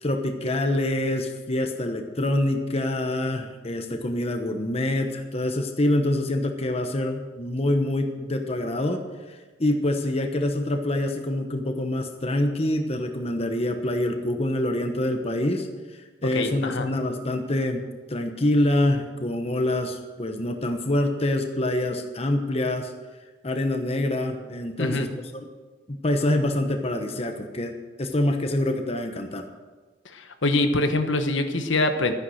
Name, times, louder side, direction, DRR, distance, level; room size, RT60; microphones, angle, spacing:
voice 1, 0.0-9.0 9.3-15.7 16.2-17.8 18.1-22.9 23.4-25.1 25.9-29.5, left 1 dB, 30° left, 5 dB, 1.0 m, -26 dB
voice 2, 16.3-16.9 24.8-25.1 30.0-32.1, left 2 dB, 75° left, 7 dB, 1.2 m, -24 dB
13.5 x 9.8 x 6.4 m, 1.3 s
head